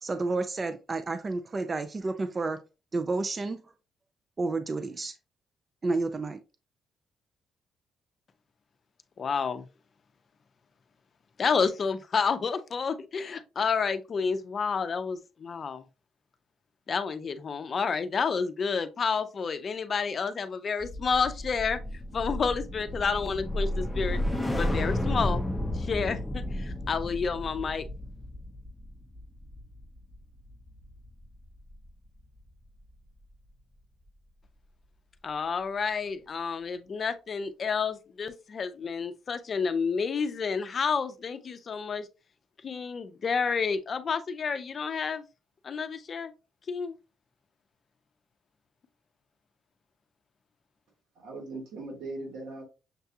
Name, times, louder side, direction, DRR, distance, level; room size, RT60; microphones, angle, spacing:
voice 1, 0.0-2.6 2.9-3.7 4.4-5.1 5.8-6.4, right 3 dB, 30° right, 0.4 m, -30 dB
voice 2, 9.2-9.6 11.4-15.8 16.9-21.8 22.1-24.2 24.5-25.4 25.7-27.9 35.2-42.1 42.6-45.2 45.6-46.3 46.7-47.0, left 5 dB, 45° left, 0.5 m, -30 dB
sound 1, 20.8-31.2 31.5-31.9, left 1 dB, 10° left, 0.7 m, -32 dB
voice 3, 51.2-52.6, right 2 dB, 85° right, 1.8 m, -39 dB
6.6 x 2.3 x 2.7 m
cardioid pair, 90°, 0 cm